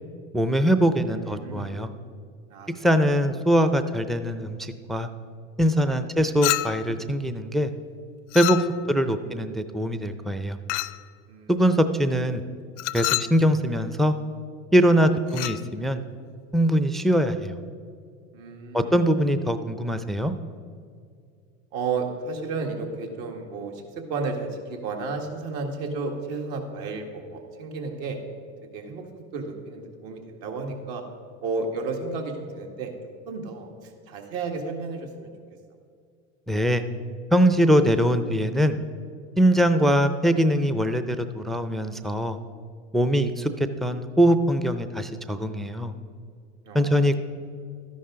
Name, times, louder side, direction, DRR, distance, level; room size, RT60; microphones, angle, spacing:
voice 1, 0.3-1.9 2.8-5.1 5.6-7.7 8.3-10.6 11.5-12.4 12.9-14.1 14.7-16.0 16.5-17.6 18.7-20.3 36.5-36.8 37.3-38.8 39.4-42.4 42.9-45.9 46.7-47.1, equal, ahead, 9 dB, 0.4 m, -22 dB
voice 2, 1.1-1.9 2.5-2.7 5.9-6.0 9.0-9.3 11.3-11.5 15.0-15.1 18.3-19.0 21.7-23.8 24.1-28.2 28.7-29.0 29.3-31.0 31.4-32.9 33.3-35.3 39.5-39.6 46.6-47.2, right 4 dB, 70° right, 3 dB, 1.8 m, -33 dB
Chink clink, 6.4-7.0 8.3-9.0 10.7-11.1 12.8-13.4 15.3-15.6, left 18 dB, 65° left, 0.5 m, -28 dB
12.5 x 10.5 x 3.8 m, 2.2 s
hypercardioid pair, 95°, 38 cm